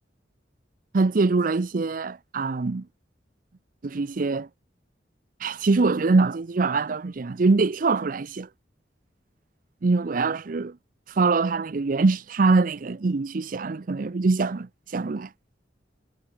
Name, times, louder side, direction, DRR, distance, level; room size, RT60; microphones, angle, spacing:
voice 1, 0.9-2.8 3.8-4.5 5.4-8.5 9.8-10.7 11.1-15.3, right 3 dB, 50° right, 0.5 m, -23 dB
head